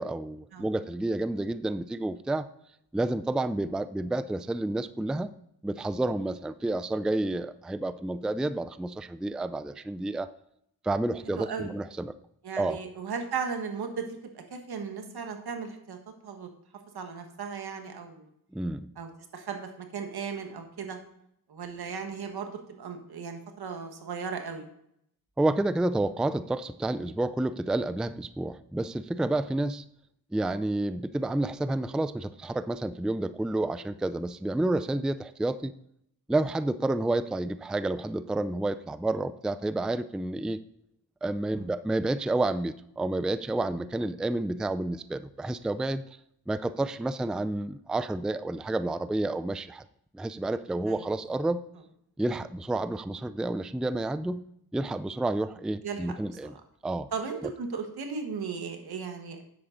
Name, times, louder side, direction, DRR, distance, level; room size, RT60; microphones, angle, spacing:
voice 1, 0.0-2.5 2.9-5.3 5.6-10.3 10.8-12.1 12.6-12.8 18.5-18.9 25.4-29.8 30.3-35.7 36.3-40.6 41.2-46.0 46.5-49.8 50.1-51.6 52.2-54.4 54.7-56.5 56.8-57.1, right 2 dB, ahead, 14 dB, 0.3 m, -30 dB
voice 2, 11.3-11.7 12.4-16.0 16.2-16.5 16.9-18.3 19.0-21.0 21.5-24.7 41.5-41.6 50.9-51.0 55.8-56.0 56.4-56.5 57.1-59.4, right 5 dB, 80° right, 5 dB, 1.6 m, -36 dB
10.5 x 7.8 x 3.9 m, 0.74 s
cardioid pair, 75°, 38 cm